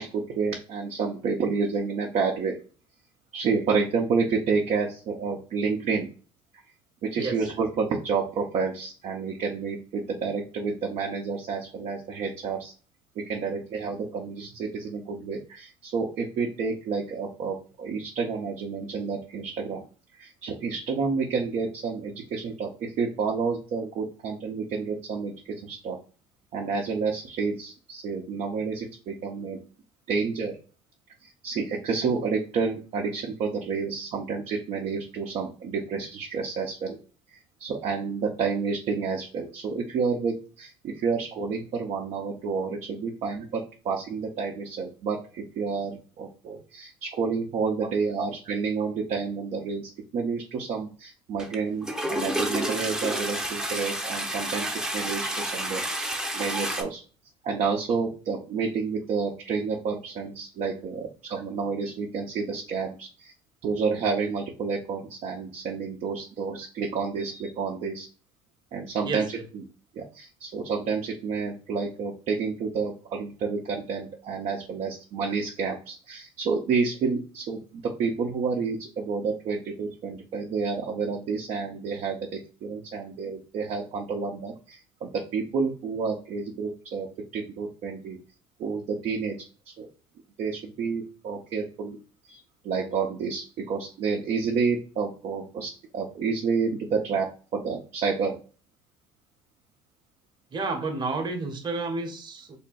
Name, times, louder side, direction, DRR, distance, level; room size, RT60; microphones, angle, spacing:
voice 1, 0.0-2.6 3.3-6.1 7.0-12.7 13.3-19.8 20.1-26.0 26.5-29.6 30.1-30.5 31.2-37.0 37.3-57.0 57.4-63.3 63.6-68.1 68.7-69.6 70.0-82.2 82.6-87.1 87.3-88.2 88.6-89.4 89.8-89.9 90.4-92.0 92.3-98.4, right 5 dB, 55° right, 0 dB, 0.7 m, -29 dB
Toilet flush, 51.4-51.6 51.8-56.8, right 1 dB, 5° right, 0.8 m, -30 dB
voice 2, 100.5-102.6, right 3 dB, 35° right, 5 dB, 1.1 m, -30 dB
3.5 x 2.2 x 4.1 m, 0.37 s
hypercardioid pair, 70°, 14 cm